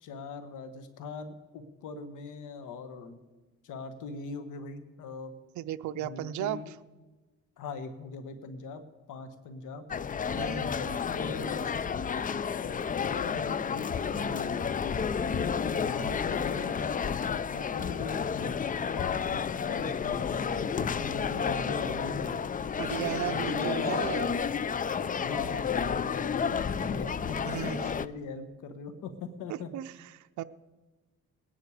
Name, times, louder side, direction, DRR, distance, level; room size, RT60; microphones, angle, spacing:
voice 1, 0.0-3.2 3.6-5.4 5.9-6.7 7.6-8.8 9.1-9.9 10.6-11.8 12.9-14.5 15.3-16.9 17.5-18.6 18.9-19.4 19.7-22.4 23.3-23.9 25.2-29.7, left 3 dB, 85° left, 9 dB, 1.5 m, -41 dB
voice 2, 5.6-6.6 10.4-10.7 22.8-24.4 27.4-27.8 29.7-30.4, right 12 dB, 75° right, 11 dB, 0.6 m, -35 dB
sound 1, 9.9-28.1, left 6 dB, 30° left, 0.4 m, -31 dB
19.0 x 10.5 x 4.9 m, 1.2 s
cardioid pair, 90°, 30 cm